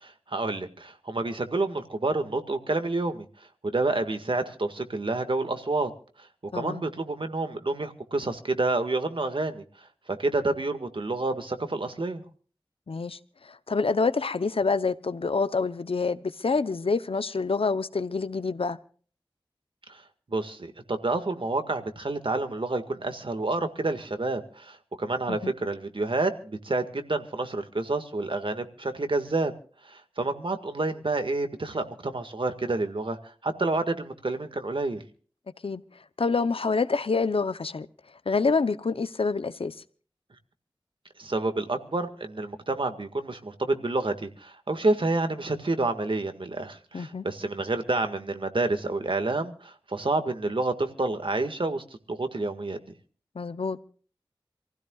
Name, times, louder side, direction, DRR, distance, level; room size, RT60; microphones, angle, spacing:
voice 1, 0.0-3.3 3.6-5.9 6.5-9.6 10.1-12.2 19.9-20.0 20.3-29.5 29.8-35.0 41.2-52.8, right 2 dB, 65° right, 1.9 m, -29 dB
voice 2, 6.5-6.8 12.9-18.8 25.3-25.5 35.6-35.8 36.2-37.9 38.3-39.7 46.9-47.3 53.3-53.8, left 4 dB, 85° left, 0.8 m, -27 dB
27.5 x 15.5 x 2.4 m
wide cardioid pair, 65°, 9 cm